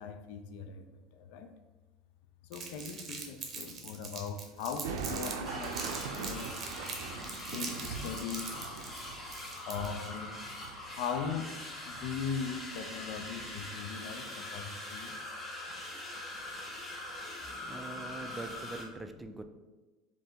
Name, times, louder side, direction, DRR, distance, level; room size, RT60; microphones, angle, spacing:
voice 1, 0.0-1.5 2.5-6.7 7.5-8.9 9.7-10.4 10.9-11.6 11.8-15.1 17.4-18.4 18.9-19.0, left 6 dB, 70° left, 7 dB, 0.4 m, -40 dB
Crumpling crinkling, 2.5-5.3 5.6-10.1, right 5 dB, 30° right, 0.8 m, -42 dB
sound 1, 4.8-11.5 11.9-12.7 13.1-13.7, right 5 dB, 85° right, 0.4 m, -42 dB
sound 2, 5.4-18.9, left 1 dB, 15° left, 0.9 m, -43 dB
voice 2, 17.7-19.4, right 3 dB, 10° right, 7 dB, 0.3 m, -43 dB
3.2 x 2.7 x 4.4 m, 1.2 s
supercardioid pair, 120°, 0 cm